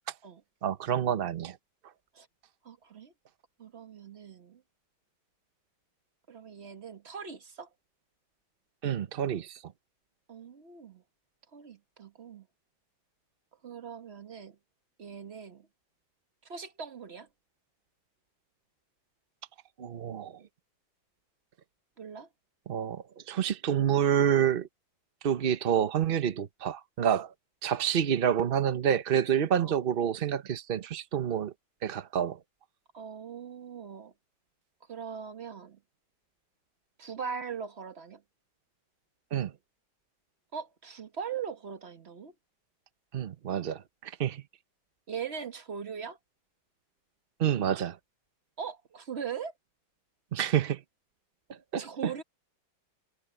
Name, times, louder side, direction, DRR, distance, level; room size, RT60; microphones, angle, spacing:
voice 1, 0.6-1.6 8.8-9.6 19.8-20.3 22.7-24.7 25.2-27.3 27.6-31.5 31.8-32.4 39.3-39.5 43.1-44.4 47.4-48.0 50.3-50.8 51.7-52.2, right 9 dB, 75° right, 0.5 m, -28 dB
voice 2, 2.6-3.1 3.6-4.6 6.3-7.7 10.3-11.0 11.5-12.5 13.6-14.6 15.0-15.7 16.4-17.3 22.0-22.3 29.6-29.8 32.9-34.1 34.9-35.8 37.0-38.2 40.5-42.3 45.1-46.2 48.6-49.5 51.8-52.2, right 6 dB, 35° right, 1.4 m, -40 dB
omnidirectional pair, 2.2 m